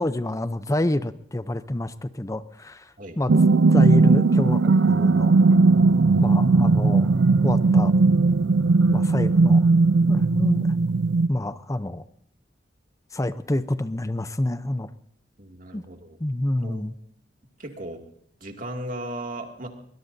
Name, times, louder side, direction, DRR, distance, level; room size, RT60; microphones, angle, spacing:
voice 1, 0.0-5.4 6.1-7.1 7.4-7.9 8.9-9.7 10.1-10.7 11.3-12.0 13.1-14.9 15.7-15.8 16.2-17.0, left 1 dB, 20° left, 13 dB, 0.6 m, -28 dB
sound 1, 3.3-11.3, right 3 dB, 75° right, 0.5 m, -18 dB
voice 2, 15.4-16.2 16.6-16.8 17.6-18.0 18.4-19.7, right 1 dB, 50° right, 4 dB, 2.4 m, -36 dB
22.5 x 21.0 x 2.7 m, 0.68 s
head